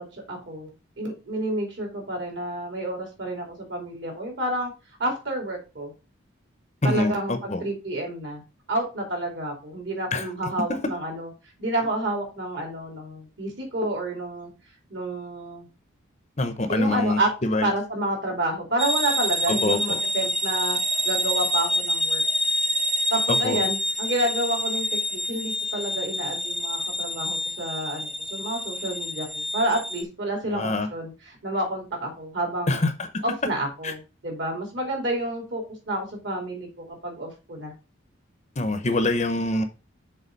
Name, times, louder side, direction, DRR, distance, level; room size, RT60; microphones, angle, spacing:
voice 1, 0.0-4.7 5.0-5.9 6.8-8.4 8.7-11.3 11.6-14.5 14.9-15.7 16.7-17.3 17.6-20.8 21.0-22.2 23.1-32.9 33.2-37.7, right 1 dB, 60° right, 3.0 m, -29 dB
voice 2, 6.8-7.6 10.1-10.3 10.7-10.9 16.4-17.7 19.5-20.0 23.3-23.6 30.5-30.9 32.7-33.1 33.8-33.9 38.6-39.7, left 2 dB, 35° left, 0.8 m, -25 dB
sound 1, 18.8-30.0, equal, ahead, 0.5 m, -27 dB
6.7 x 4.0 x 5.2 m
head